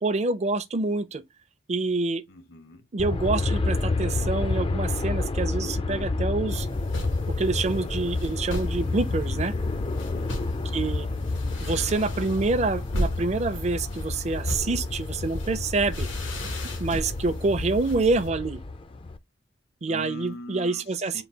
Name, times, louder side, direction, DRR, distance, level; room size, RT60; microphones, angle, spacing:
voice 1, 0.0-1.2 1.7-2.2 2.9-6.7 7.3-9.5 10.7-11.1 11.6-16.1 16.8-18.6 19.8-21.2, right 3 dB, 35° right, 0.5 m, -27 dB
voice 2, 2.3-2.9 9.9-10.5 19.9-21.2, left 1 dB, 55° left, 0.8 m, -42 dB
Aircraft, 3.0-19.2, left 3 dB, 25° left, 0.4 m, -29 dB
sound 1, 6.5-18.3, equal, 85° left, 1.3 m, -37 dB
3.9 x 2.3 x 4.5 m
head